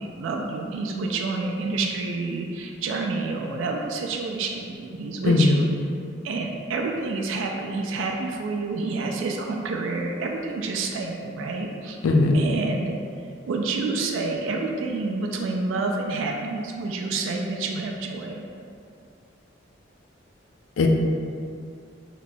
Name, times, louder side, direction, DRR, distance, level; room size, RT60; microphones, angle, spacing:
voice 1, 0.0-5.7 6.2-12.0 12.3-13.0 13.5-18.4, right 3 dB, 80° right, 1 dB, 0.3 m, -28 dB
voice 2, 5.3-5.6 12.0-12.4 20.8-20.9, left 3 dB, 85° left, 3 dB, 0.4 m, -18 dB
2.9 x 2.2 x 4.1 m, 2.5 s
head